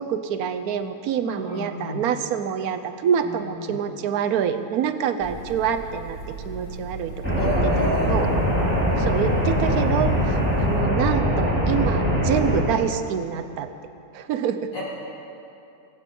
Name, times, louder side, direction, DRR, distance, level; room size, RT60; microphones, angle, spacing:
voice 1, 0.0-8.3 9.0-13.7 14.1-14.7, right 8 dB, 65° right, 10 dB, 1.1 m, -26 dB
voice 2, 1.2-2.0 3.2-3.8 7.4-8.2 14.7-14.8, equal, 75° left, -7 dB, 4.3 m, -30 dB
sound 1, 5.2-10.8, right 1 dB, 25° right, 1.9 m, -38 dB
sound 2, 7.2-12.6, equal, 5° right, 3.3 m, -22 dB
23.0 x 8.5 x 5.3 m, 2.7 s
omnidirectional pair, 1.9 m